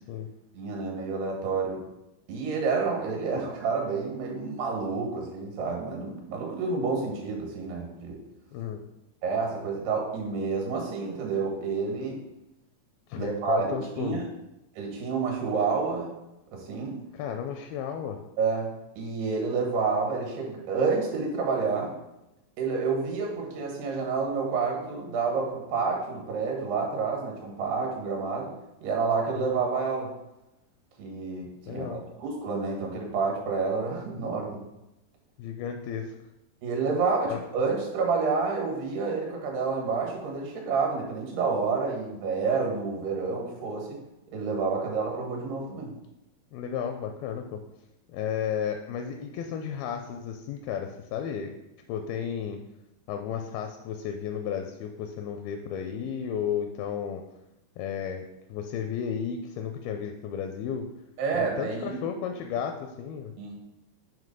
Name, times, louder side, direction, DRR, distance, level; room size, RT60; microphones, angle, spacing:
voice 1, 0.5-1.8 2.3-8.2 9.2-12.2 13.1-14.2 14.8-16.1 16.5-17.0 18.4-22.0 22.6-28.5 28.8-30.1 31.0-34.6 36.6-44.0 44.3-45.9 61.2-62.0 63.4-63.6, right 4 dB, 80° right, 0 dB, 3.3 m, -29 dB
voice 2, 8.5-8.8 13.1-14.2 17.1-18.2 29.5-29.6 31.7-32.0 35.4-36.1 37.3-37.4 46.5-47.6 48.1-51.6 51.9-52.6 53.1-57.2 57.8-60.9 61.3-63.3, left 8 dB, 85° left, 5 dB, 2.2 m, -33 dB
7.5 x 3.0 x 5.3 m, 0.93 s
omnidirectional pair, 4.7 m